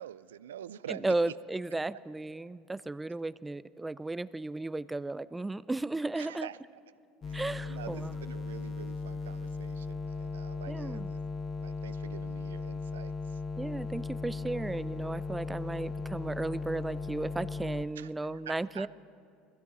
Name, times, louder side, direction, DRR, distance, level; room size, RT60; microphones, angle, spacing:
voice 1, 0.0-1.3 6.2-7.0 7.3-11.2 11.6-13.4 18.0-18.9, right 10 dB, 90° right, 17 dB, 0.3 m, -46 dB
voice 2, 1.0-6.5 7.3-8.1 10.7-11.2 13.6-18.9, right 2 dB, 15° right, 17 dB, 0.4 m, -34 dB
sound 1, 7.2-17.9, left 4 dB, 35° left, 0.6 m, -37 dB
21.5 x 15.5 x 4.0 m, 2.5 s
hypercardioid pair, 80°, 0 cm